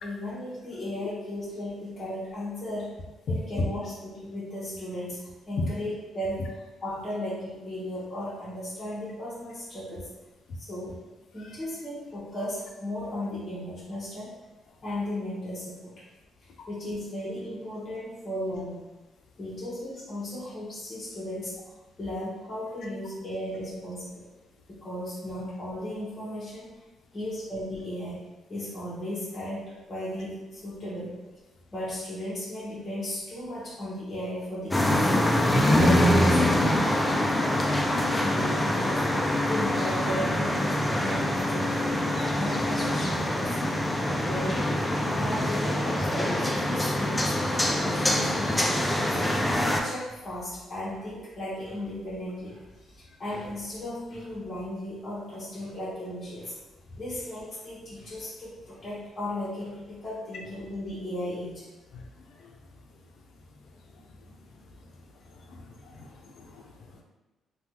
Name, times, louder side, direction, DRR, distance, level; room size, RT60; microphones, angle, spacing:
voice 1, 0.0-3.0 3.3-10.1 10.6-11.0 11.3-14.3 14.8-16.0 16.7-18.9 19.4-21.6 22.0-24.3 24.8-26.8 27.1-28.2 28.5-31.2 31.7-35.3 35.7-37.4 38.2-39.1 39.4-42.0 42.3-43.6 44.1-44.7 45.0-56.5 57.0-61.6, left 1 dB, 30° left, -9 dB, 1.0 m, -36 dB
sound 1, 34.7-49.8, left 1 dB, 15° left, 0.4 m, -25 dB
voice 2, 65.3-67.0, left 2 dB, 70° left, 1 dB, 0.5 m, -36 dB
3.3 x 2.2 x 2.8 m, 1.1 s
cardioid pair, 90°, 0 cm